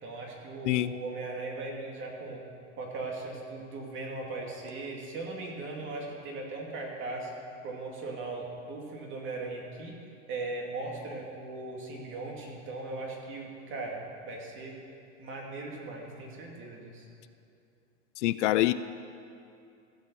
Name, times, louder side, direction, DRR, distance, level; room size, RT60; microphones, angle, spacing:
voice 1, 0.0-2.4 2.8-7.3 7.6-10.0 10.3-14.7 15.2-17.1, right 3 dB, 30° right, -1 dB, 2.3 m, -38 dB
voice 2, 18.2-18.7, left 15 dB, 65° left, 13 dB, 0.5 m, -25 dB
15.5 x 5.7 x 6.8 m, 2.6 s
supercardioid pair, 135°, 38 cm